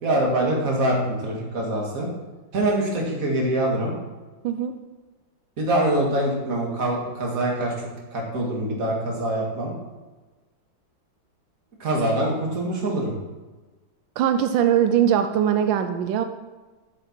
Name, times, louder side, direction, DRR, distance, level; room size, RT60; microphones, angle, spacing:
voice 1, 0.0-2.1 2.5-3.9 5.6-9.7 11.8-13.1, right 1 dB, 50° right, -1 dB, 2.2 m, -24 dB
voice 2, 4.4-4.7 14.2-16.2, right 9 dB, 90° right, 8 dB, 1.3 m, -21 dB
8.2 x 7.3 x 4.4 m, 1.2 s
omnidirectional pair, 2.0 m